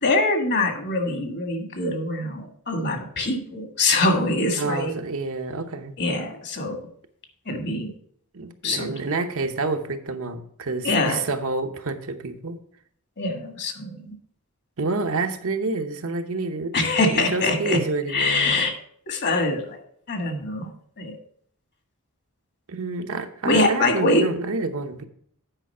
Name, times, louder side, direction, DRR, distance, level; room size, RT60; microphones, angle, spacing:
voice 1, 0.0-5.0 6.0-6.8 7.4-7.9 8.6-8.9 10.8-11.2 13.2-14.1 16.7-17.8 18.1-18.7 19.1-19.8 20.1-20.7 21.0-21.1 23.4-24.2, left 2 dB, 50° left, 5 dB, 1.6 m, -23 dB
voice 2, 4.6-5.9 8.3-12.6 14.8-16.7 17.1-18.6 22.7-25.1, right 3 dB, 70° right, 6 dB, 0.9 m, -28 dB
9.0 x 5.1 x 5.5 m, 0.62 s
head